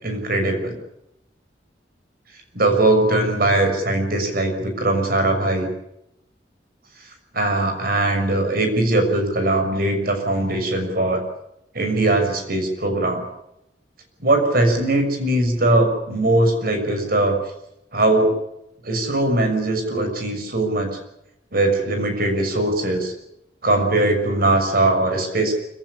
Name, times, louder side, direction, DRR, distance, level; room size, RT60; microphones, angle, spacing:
voice 1, 0.0-0.7 2.5-5.7 7.3-11.2 11.7-13.2 14.2-17.4 17.9-18.3 18.8-21.0 21.5-23.1 23.6-25.6, right 2 dB, 55° right, 5 dB, 6.3 m, -20 dB
25.5 x 16.5 x 10.0 m, 0.82 s
head